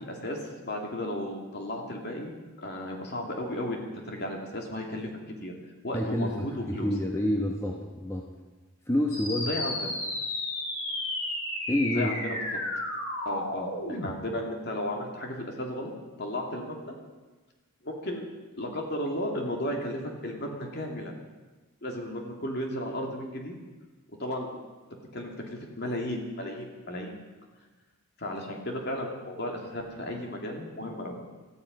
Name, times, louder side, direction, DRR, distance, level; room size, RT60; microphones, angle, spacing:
voice 1, 0.0-5.1 5.4-5.5 5.8-6.9 9.4-9.9 11.9-12.4 13.2-15.9 16.2-17.0 17.8-18.3 18.6-21.1 21.8-23.5 24.2-24.6 25.1-27.1 28.2-31.1, left 1 dB, 50° left, 1 dB, 2.7 m, -34 dB
voice 2, 5.9-8.3 8.9-9.5 11.7-12.1, left 1 dB, 15° left, 0 dB, 1.1 m, -28 dB
sound 1, 9.1-14.1, left 2 dB, 75° left, 4.3 m, -33 dB
18.0 x 14.0 x 5.4 m, 1.2 s
head